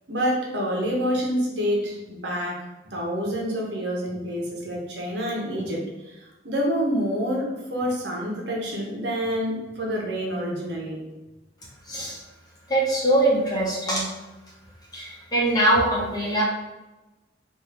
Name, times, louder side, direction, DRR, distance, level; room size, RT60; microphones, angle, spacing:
voice 1, 0.1-11.0, equal, 65° right, -2 dB, 1.1 m, -27 dB
voice 2, 11.9-12.2 12.7-14.1 14.9-16.4, right 1 dB, 20° left, -5 dB, 1.0 m, -22 dB
4.5 x 2.7 x 3.4 m, 1.1 s
head